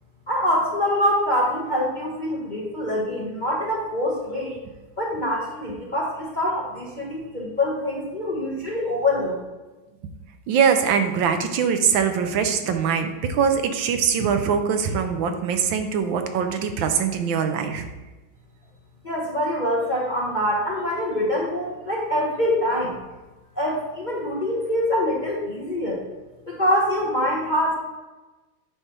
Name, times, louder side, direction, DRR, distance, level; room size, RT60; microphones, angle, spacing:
voice 1, 0.3-4.6 5.0-9.4 19.0-23.0 23.6-26.0 26.5-27.7, left 1 dB, 30° left, -3 dB, 0.9 m, -24 dB
voice 2, 10.5-17.9, right 6 dB, 75° right, 7 dB, 1.4 m, -22 dB
8.6 x 3.4 x 5.8 m, 1.2 s
omnidirectional pair, 2.2 m